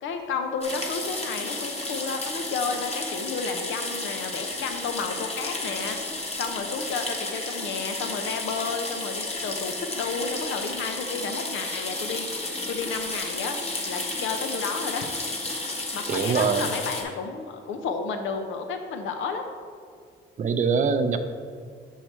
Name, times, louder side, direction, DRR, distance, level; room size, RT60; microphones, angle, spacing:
voice 1, 0.0-6.0 6.4-12.3 12.7-13.6 13.9-15.1 15.7-19.4, left 5 dB, 80° left, 6 dB, 0.6 m, -32 dB
sound 1, 0.6-17.0, left 2 dB, 30° left, 1.2 m, -32 dB
voice 2, 16.1-16.7 20.4-21.2, right 5 dB, 40° right, 8 dB, 0.5 m, -23 dB
6.6 x 4.6 x 4.4 m, 2.2 s
cardioid pair, 90°, 20 cm